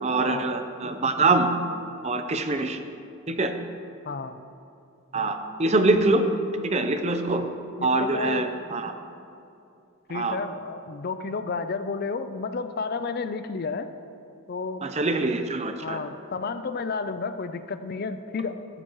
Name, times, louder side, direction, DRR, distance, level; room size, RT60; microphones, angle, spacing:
voice 1, 0.0-1.5 2.0-2.8 3.3-3.5 5.1-6.2 6.6-7.4 7.8-8.9 10.1-10.4 14.8-16.0, right 2 dB, 30° right, 7 dB, 0.6 m, -24 dB
voice 2, 4.1-4.4 7.3-7.4 7.8-8.5 10.1-13.9 14.5-14.8 15.8-18.6, left 4 dB, 45° left, 10 dB, 0.4 m, -31 dB
13.0 x 13.0 x 3.1 m, 2.6 s
head